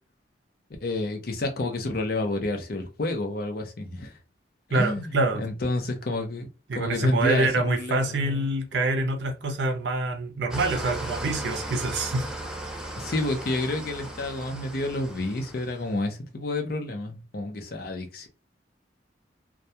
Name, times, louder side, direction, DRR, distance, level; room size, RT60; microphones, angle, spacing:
voice 1, 0.8-4.2 4.7-8.5 13.0-18.3, left 2 dB, 55° left, 0.6 m, -30 dB
voice 2, 4.7-5.4 6.7-12.3, right 2 dB, 70° right, 0.5 m, -26 dB
Engine starting / Idling, 10.5-15.9, right 1 dB, 5° right, 0.3 m, -36 dB
2.2 x 2.2 x 2.7 m
head